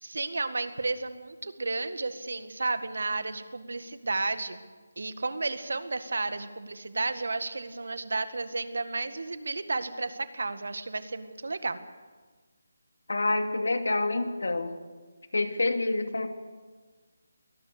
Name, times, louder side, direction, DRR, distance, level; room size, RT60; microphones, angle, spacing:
voice 1, 0.0-4.6 5.0-11.8, right 3 dB, 75° right, 11 dB, 1.8 m, -32 dB
voice 2, 13.1-14.7 15.3-16.3, left 2 dB, 85° left, 6 dB, 2.6 m, -27 dB
22.5 x 19.0 x 6.8 m, 1.4 s
figure-of-eight pair, 170°, 0 cm